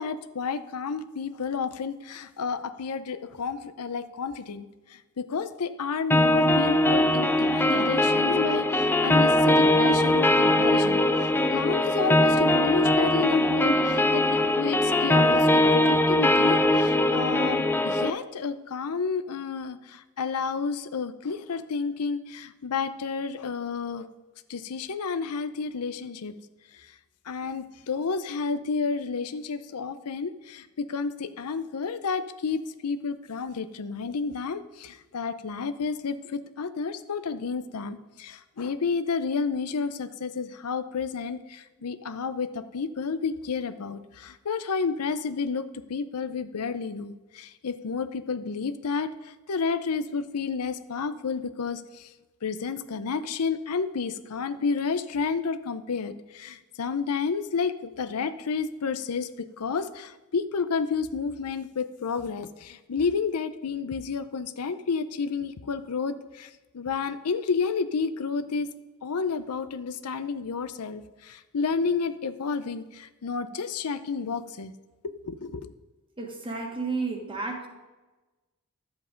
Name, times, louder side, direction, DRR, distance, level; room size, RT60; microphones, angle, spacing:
voice 1, 0.0-14.3 14.6-24.1 24.5-26.3 26.7-26.9 27.3-52.1 52.4-68.7 69.0-74.7 75.0-75.7, left 5 dB, 90° left, 12 dB, 0.6 m, -31 dB
sound 1, 6.1-18.1, left 1 dB, 10° left, 0.5 m, -21 dB
voice 2, 76.2-77.7, right 3 dB, 25° right, 2 dB, 1.5 m, -32 dB
11.5 x 8.1 x 5.1 m, 1.1 s
head